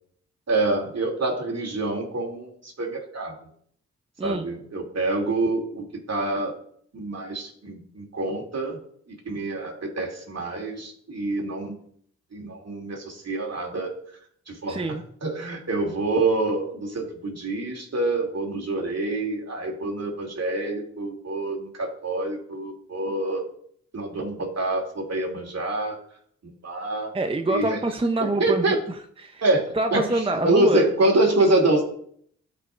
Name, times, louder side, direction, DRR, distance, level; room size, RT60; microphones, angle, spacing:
voice 1, 0.5-3.4 4.2-6.6 6.9-8.8 9.1-11.7 12.3-13.9 14.5-14.8 15.2-23.4 23.9-26.0 26.4-27.1 27.5-27.8 28.2-28.8 29.4-31.8, right 2 dB, 55° right, 0 dB, 2.9 m, -26 dB
voice 2, 14.7-15.0 27.1-29.4 29.7-30.8, right 2 dB, 15° right, 7 dB, 0.7 m, -26 dB
12.5 x 5.4 x 2.6 m, 0.63 s
supercardioid pair, 40°, 32 cm